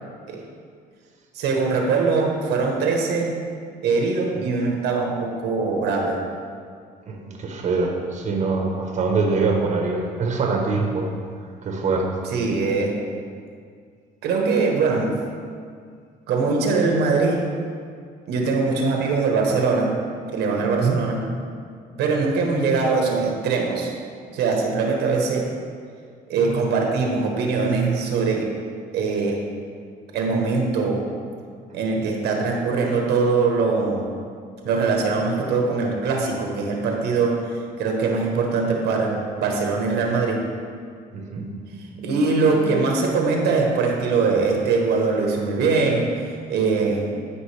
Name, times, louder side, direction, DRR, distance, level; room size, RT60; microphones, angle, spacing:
voice 1, 1.3-3.4 3.8-6.2 12.3-13.0 14.2-15.1 16.3-17.4 18.3-20.0 20.3-21.2 22.0-23.9 24.3-25.5 26.3-28.5 28.9-29.4 30.1-31.0 31.7-34.1 34.6-40.5 41.9-47.1, right 4 dB, 80° right, 1 dB, 1.2 m, -22 dB
voice 2, 7.1-11.1 11.6-12.1 20.8-21.0 41.1-41.4, right 4 dB, 45° right, 1 dB, 1.2 m, -23 dB
11.5 x 5.2 x 3.3 m, 2.2 s
cardioid pair, 110°, 17 cm